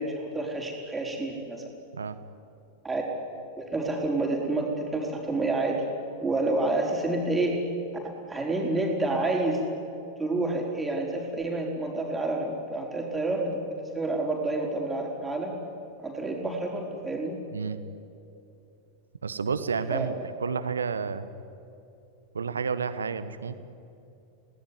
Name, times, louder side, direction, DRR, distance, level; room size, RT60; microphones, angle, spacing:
voice 1, 0.0-1.6 2.8-3.0 3.6-5.8 6.2-7.6 8.3-9.6 10.2-13.6 13.9-15.5 16.0-17.4 19.9-20.1, right 2 dB, 10° right, 0 dB, 5.0 m, -28 dB
voice 2, 19.2-21.3 22.3-23.5, right 5 dB, 70° right, 13 dB, 1.3 m, -30 dB
30.0 x 19.0 x 9.8 m, 2.7 s
figure-of-eight pair, 90°, 0 cm